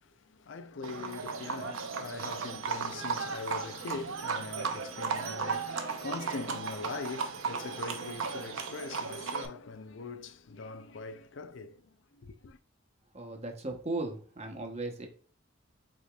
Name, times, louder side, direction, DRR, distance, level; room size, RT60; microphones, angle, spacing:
voice 1, 0.0-12.6, left 4 dB, 65° left, 0.5 m, -42 dB
Livestock farm animals working animals, 0.8-9.5, right 5 dB, 80° right, 0.7 m, -35 dB
voice 2, 13.1-15.1, right 2 dB, 30° right, 0.9 m, -37 dB
4.9 x 4.2 x 2.3 m
head